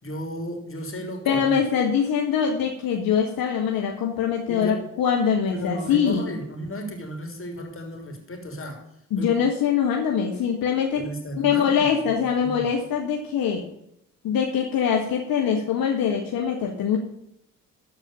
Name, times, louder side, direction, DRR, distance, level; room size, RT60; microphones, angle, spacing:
voice 1, 0.0-1.6 4.5-4.9 5.5-8.8 9.2-9.3 10.9-12.7, equal, 35° left, 3 dB, 3.6 m, -34 dB
voice 2, 1.2-6.3 9.1-11.0 11.3-13.6 14.2-17.0, left 7 dB, 60° left, 1 dB, 1.7 m, -23 dB
14.0 x 4.8 x 6.8 m, 0.79 s
hypercardioid pair, 50°, 38 cm